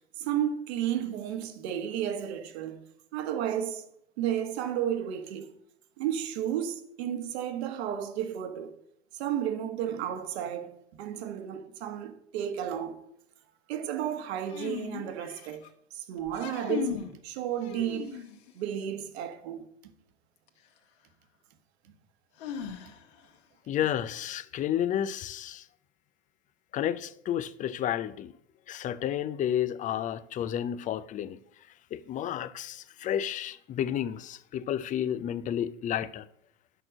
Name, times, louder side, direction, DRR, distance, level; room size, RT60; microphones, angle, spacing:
voice 1, 0.2-2.8 3.1-3.9 4.2-5.5 6.0-8.8 9.1-13.0 13.7-15.7 15.9-17.0 17.2-18.2 18.6-19.6, right 10 dB, 55° right, 1.6 m, -32 dB
sound 1, 14.5-15.7 16.2-17.1 17.6-18.5 20.5-20.6 22.4-23.2, left 7 dB, 55° left, 1.6 m, -37 dB
voice 2, 23.7-25.6 26.7-28.3 28.7-31.4 31.9-36.3, left 10 dB, 20° left, 0.5 m, -31 dB
11.0 x 6.0 x 6.1 m
figure-of-eight pair, 90°, 37 cm